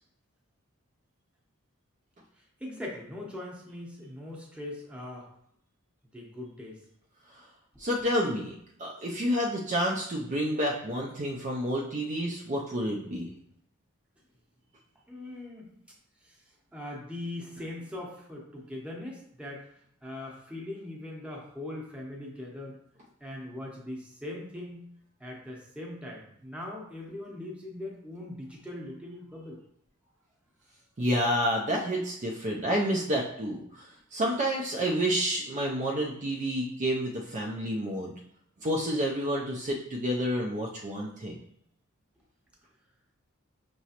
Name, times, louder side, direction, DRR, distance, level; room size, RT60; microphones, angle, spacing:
voice 1, 2.6-5.3 6.1-6.8 15.1-15.7 16.2-16.4 16.7-19.7 20.0-22.8 23.2-24.8 25.2-29.6, left 1 dB, 5° right, -2 dB, 0.8 m, -40 dB
voice 2, 7.8-8.5 8.8-13.3 31.0-33.8 34.1-38.1 38.6-41.3, equal, 35° right, -2 dB, 0.5 m, -29 dB
5.8 x 3.0 x 2.9 m, 0.71 s
head